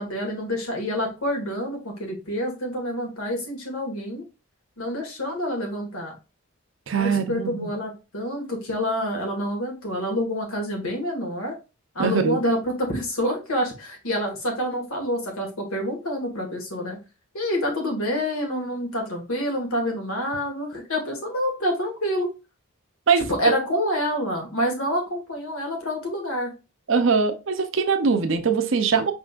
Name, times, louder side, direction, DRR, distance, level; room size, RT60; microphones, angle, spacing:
voice 1, 0.0-4.2 4.8-6.1 6.9-11.5 11.9-17.0 17.3-22.3 23.3-26.5, equal, 70° left, 1.7 m, -27 dB
voice 2, 6.9-7.7 12.0-12.4 23.1-23.2 26.9-29.1, right 5 dB, 60° right, 0.6 m, -22 dB
5.2 x 3.7 x 2.4 m
head